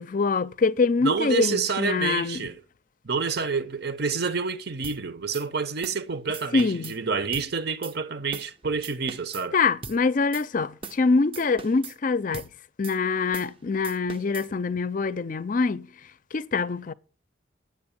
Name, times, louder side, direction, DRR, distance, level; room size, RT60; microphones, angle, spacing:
voice 1, 0.0-2.5 6.5-7.0 9.5-12.5 12.8-15.9 16.3-16.9, left 4 dB, 45° left, 0.4 m, -24 dB
voice 2, 1.0-2.6 3.0-9.6, right 5 dB, 60° right, 0.9 m, -28 dB
sound 1, 4.8-5.0 5.3-5.5 5.8-6.0 6.3-7.0 7.3-7.5 7.8-7.9 8.3-8.5 8.8-9.5 9.8-10.0 10.3-10.5 10.8-11.0 11.3-12.0 12.3-12.5 12.8-13.0 13.3-13.5 13.8-14.5, right 5 dB, 30° right, 0.6 m, -40 dB
9.6 x 7.7 x 7.0 m
head